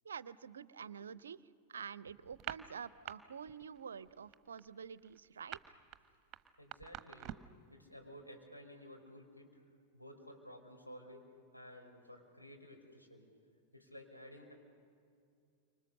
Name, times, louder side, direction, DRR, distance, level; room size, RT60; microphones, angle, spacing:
voice 1, 0.0-1.4 1.7-5.6, right 7 dB, 70° right, 19 dB, 0.6 m, -48 dB
sound 1, 2.3-3.2 3.5-3.8 4.1-7.6, right 12 dB, 30° right, 1.1 m, -47 dB
voice 2, 6.6-7.4 7.7-9.6 9.9-13.3 13.7-14.5, equal, 90° left, 0 dB, 4.5 m, -54 dB
29.5 x 25.5 x 6.7 m, 2.3 s
figure-of-eight pair, 90°, 0 cm